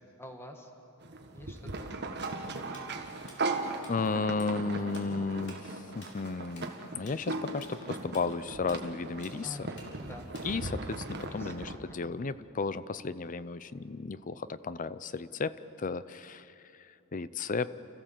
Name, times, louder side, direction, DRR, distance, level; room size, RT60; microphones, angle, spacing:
voice 1, 0.2-0.7 1.3-1.9 2.5-3.0 9.4-10.3 11.2-11.6, left 1 dB, 10° left, 3 dB, 1.8 m, -47 dB
sound 1, 1.0-11.8, right 3 dB, 50° right, 1.5 m, -38 dB
Tools, 2.2-3.9 4.2-4.5 4.8-10.8, left 2 dB, 55° left, 3.9 m, -53 dB
voice 2, 3.9-9.6 10.4-16.5 16.8-17.7, left 4 dB, 35° left, 15 dB, 0.5 m, -34 dB
30.0 x 14.5 x 7.5 m, 2.9 s
head